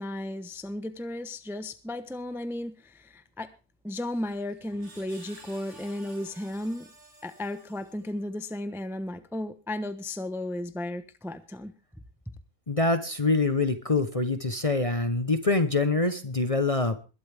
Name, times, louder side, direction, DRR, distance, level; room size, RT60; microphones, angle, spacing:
voice 1, 0.0-3.5 3.8-6.9 7.2-11.7, left 1 dB, ahead, 0.8 m, -34 dB
Screech, 4.0-8.3, right 2 dB, 50° right, 3.7 m, -53 dB
voice 2, 12.7-17.0, left 3 dB, 30° left, 0.9 m, -25 dB
21.0 x 11.5 x 3.5 m
omnidirectional pair, 1.5 m